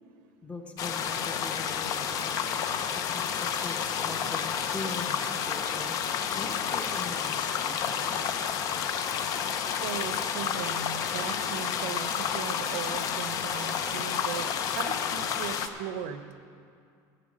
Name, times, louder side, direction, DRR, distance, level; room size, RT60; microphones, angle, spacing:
voice 1, 0.4-8.4, left 3 dB, 15° left, 4 dB, 1.0 m, -42 dB
sound 1, 0.8-15.7, left 7 dB, 40° left, 0.7 m, -30 dB
voice 2, 9.6-16.2, right 8 dB, 80° right, 10 dB, 0.9 m, -38 dB
15.0 x 6.8 x 7.6 m, 2.3 s
cardioid pair, 150°, 9 cm